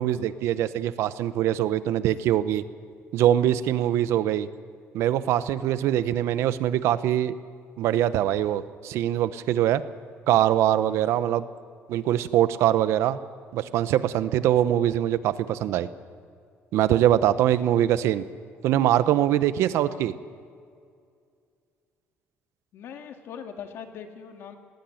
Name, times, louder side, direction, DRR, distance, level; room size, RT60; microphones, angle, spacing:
voice 1, 0.0-2.6 3.1-4.5 4.9-7.3 7.8-9.8 10.3-11.4 11.9-13.2 13.5-15.9 16.7-18.2 18.6-20.1, right 12 dB, 75° right, 14 dB, 0.9 m, -23 dB
voice 2, 22.7-24.6, left 7 dB, 60° left, 5 dB, 2.1 m, -41 dB
19.0 x 19.0 x 7.8 m, 2.3 s
cardioid pair, 160°, 5 cm